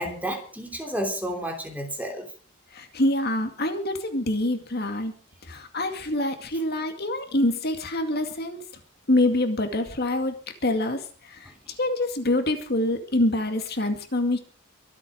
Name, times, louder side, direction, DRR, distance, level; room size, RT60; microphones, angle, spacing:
voice 1, 0.0-2.2, equal, 10° right, 3 dB, 3.2 m, -31 dB
voice 2, 2.7-5.1 5.5-8.6 9.1-10.3 10.6-11.5 11.8-14.4, left 1 dB, 50° left, 6 dB, 2.3 m, -25 dB
24.5 x 8.3 x 5.1 m, 0.38 s
head